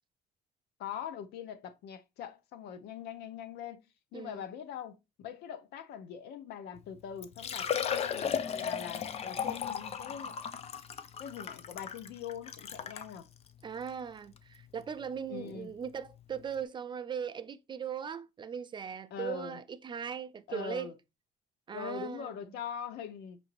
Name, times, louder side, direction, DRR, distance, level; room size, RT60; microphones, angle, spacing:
voice 1, 0.8-3.8 4.1-10.4 11.2-13.3 15.3-15.7 19.1-19.6 20.5-20.9 21.7-23.4, left 8 dB, 80° left, 0.6 m, -42 dB
Liquid, 6.8-6.9 7.2-13.1 13.8-13.9 14.4-14.5 16.1-16.2 16.4-16.5, left 8 dB, 40° left, 0.4 m, -35 dB
voice 2, 13.6-20.9 21.7-22.3, right 7 dB, 30° right, 0.3 m, -39 dB
5.6 x 2.6 x 3.0 m
cardioid pair, 110°, 17 cm